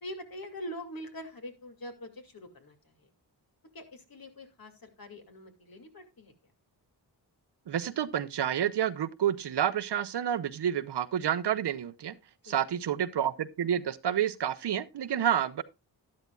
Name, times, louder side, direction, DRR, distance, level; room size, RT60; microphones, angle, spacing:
voice 1, 0.0-3.1 3.7-6.3 12.5-12.6 15.2-15.3, equal, 55° left, 2.6 m, -44 dB
voice 2, 7.7-12.1 12.4-15.6, right 9 dB, 70° right, 0.8 m, -29 dB
12.0 x 11.5 x 2.4 m
cardioid pair, 75°, 42 cm